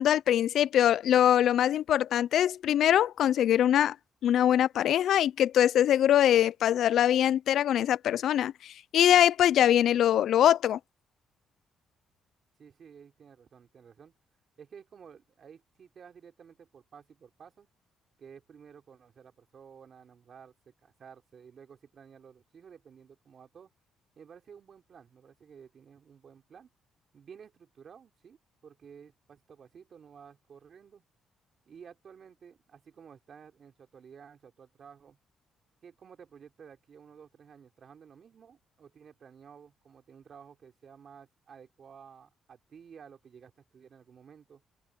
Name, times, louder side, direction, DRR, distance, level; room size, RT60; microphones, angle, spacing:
voice 1, 0.0-3.9 4.2-10.8, left 11 dB, 75° left, 0.4 m, -23 dB
voice 2, 12.6-14.1 14.6-17.7 18.2-23.7 24.2-26.7 27.1-31.0 31.7-35.2 35.8-44.6, right 7 dB, 55° right, 3.6 m, -53 dB
open air
cardioid pair, 90°, 0 cm